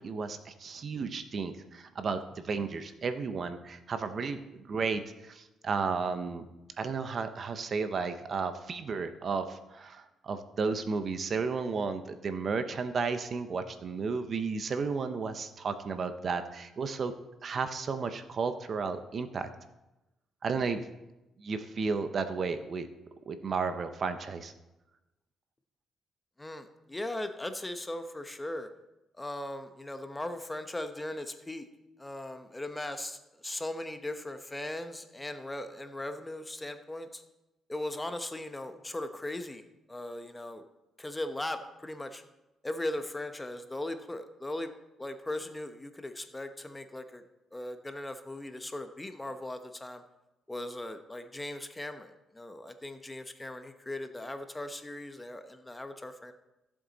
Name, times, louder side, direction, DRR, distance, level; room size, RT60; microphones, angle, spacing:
voice 1, 0.0-6.4 6.8-17.1 17.4-19.5 20.4-20.8 21.4-22.9 23.3-24.5, right 4 dB, 50° right, 9 dB, 0.9 m, -33 dB
voice 2, 26.4-28.7 29.2-31.7 32.0-33.2 33.4-37.2 37.7-39.6 39.9-40.6 41.0-42.2 42.6-44.7 45.0-47.2 47.5-50.0 50.5-56.3, left 1 dB, 15° left, 8 dB, 0.9 m, -38 dB
15.0 x 7.5 x 4.1 m, 0.98 s
cardioid pair, 90°, 0 cm